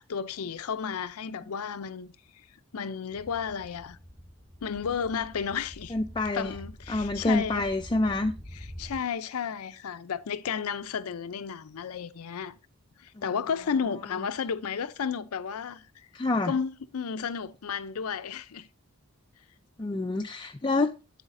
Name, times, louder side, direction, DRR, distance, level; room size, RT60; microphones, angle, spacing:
voice 1, 0.0-4.0 4.6-6.0 6.3-7.7 8.5-12.6 13.0-16.1 16.4-18.7, left 6 dB, 90° left, 0.5 m, -33 dB
sound 1, 3.1-9.0, equal, 25° right, 1.7 m, -46 dB
voice 2, 5.9-6.5 6.9-8.3 13.2-13.3 16.1-16.5 19.8-20.9, left 2 dB, 20° left, 0.3 m, -27 dB
8.1 x 8.0 x 2.5 m
head